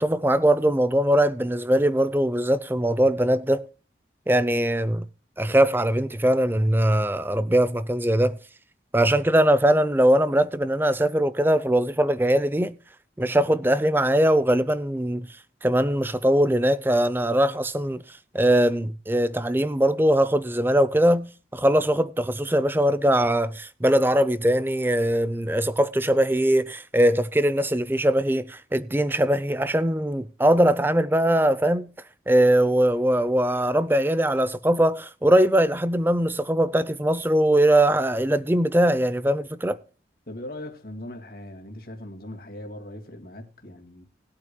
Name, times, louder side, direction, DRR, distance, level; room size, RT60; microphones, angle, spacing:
voice 1, 0.0-3.7 4.3-5.1 5.4-8.4 8.9-12.8 13.2-15.3 15.6-31.9 32.3-39.8, right 1 dB, 10° right, 0.5 m, -21 dB
voice 2, 40.3-44.0, left 1 dB, 50° left, 2.2 m, -39 dB
20.0 x 8.7 x 2.2 m
head